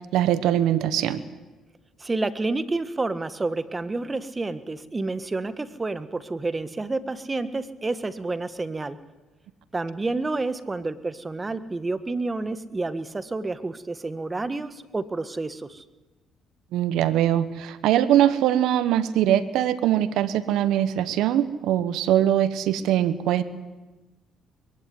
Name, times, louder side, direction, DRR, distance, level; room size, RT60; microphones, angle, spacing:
voice 1, 0.1-1.2 16.7-23.4, right 11 dB, 75° right, 14 dB, 1.1 m, -22 dB
voice 2, 2.0-9.0 9.7-15.8, right 3 dB, 25° right, 12 dB, 1.6 m, -29 dB
22.0 x 16.0 x 9.7 m, 1.2 s
supercardioid pair, 65°, 0 cm